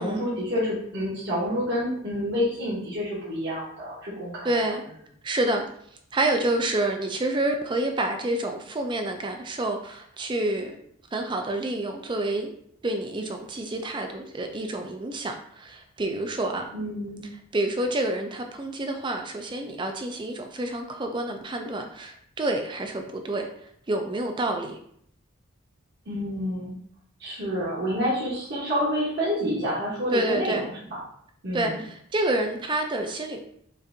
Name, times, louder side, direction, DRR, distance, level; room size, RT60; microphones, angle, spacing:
voice 1, 0.0-4.6 16.7-17.3 26.1-26.8 27.2-30.7 31.4-31.8, equal, 50° right, -7 dB, 1.0 m, -28 dB
voice 2, 4.4-4.8 5.2-5.6 6.1-10.8 11.1-12.5 12.8-16.7 17.5-24.8 30.1-30.7 31.5-33.4, right 2 dB, 20° right, 4 dB, 0.4 m, -28 dB
5.1 x 2.6 x 2.6 m, 0.68 s
head